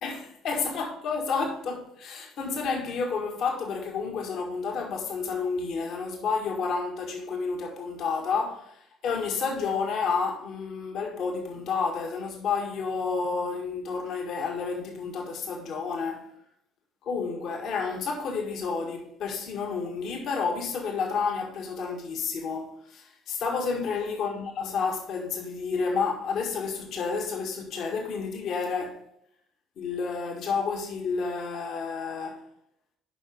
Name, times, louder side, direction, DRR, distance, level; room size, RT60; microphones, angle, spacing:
voice 1, 0.0-16.3 17.0-29.0 29.8-32.4, left 5 dB, 55° left, 1.7 m, -30 dB
11.0 x 5.7 x 3.5 m
figure-of-eight pair, 50°, 0 cm